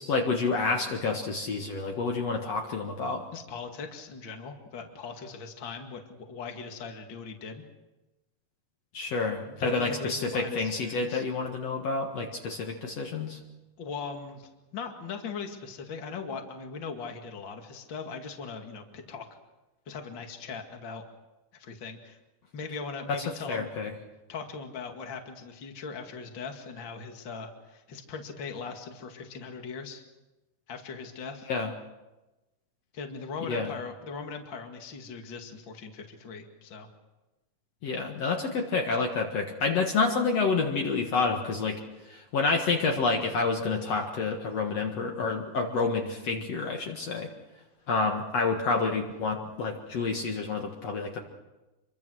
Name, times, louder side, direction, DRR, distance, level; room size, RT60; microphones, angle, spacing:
voice 1, 0.0-3.2 8.9-13.4 23.1-23.9 31.5-31.7 33.5-33.7 37.8-41.8 42.1-47.3 47.9-51.2, left 4 dB, 55° left, 2 dB, 2.6 m, -29 dB
voice 2, 3.3-7.6 9.4-11.2 13.8-19.3 19.9-21.0 21.6-22.2 22.5-23.7 24.3-30.0 30.7-31.5 32.9-36.9, left 5 dB, 40° left, 4 dB, 2.5 m, -40 dB
27.0 x 23.5 x 6.4 m, 1.1 s
omnidirectional pair, 3.6 m